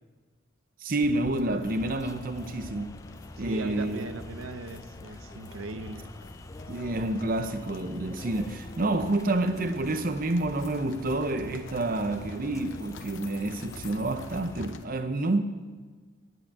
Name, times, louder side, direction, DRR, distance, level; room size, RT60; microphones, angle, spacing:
voice 1, 0.8-2.9 3.4-4.2 6.7-15.4, right 2 dB, 45° right, 0.6 m, -29 dB
sound 1, 1.0-14.8, left 3 dB, 65° left, 0.8 m, -49 dB
sound 2, 1.7-14.7, left 2 dB, 15° left, 0.3 m, -45 dB
voice 2, 3.4-6.1, right 3 dB, 90° right, 0.8 m, -39 dB
11.0 x 8.7 x 8.6 m
head